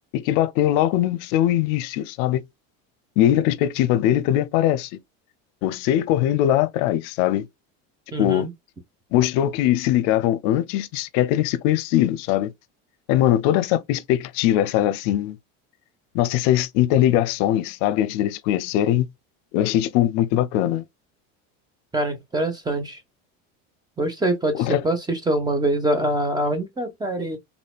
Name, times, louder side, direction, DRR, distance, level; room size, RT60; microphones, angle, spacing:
voice 1, 0.1-2.4 3.2-5.0 5.6-7.5 8.2-8.5 9.1-12.5 13.1-15.4 16.1-19.1 19.5-20.9 24.5-24.8, left 12 dB, 75° left, 0.6 m, -21 dB
voice 2, 8.1-8.5 21.9-23.0 24.0-27.4, right 1 dB, 10° right, 1.1 m, -24 dB
4.1 x 3.6 x 2.3 m
cardioid pair, 135°, 36 cm